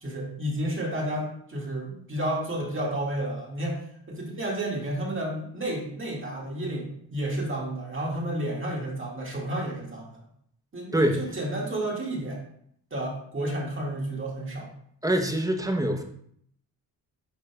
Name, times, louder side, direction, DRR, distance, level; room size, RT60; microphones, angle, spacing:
voice 1, 0.0-3.8 4.1-10.2 10.7-12.4 12.9-14.7, right 1 dB, 30° right, -2 dB, 1.8 m, -31 dB
voice 2, 10.9-11.2 15.0-16.0, right 1 dB, 10° right, 4 dB, 0.8 m, -24 dB
10.5 x 4.0 x 2.3 m, 0.68 s
cardioid pair, 90°, 39 cm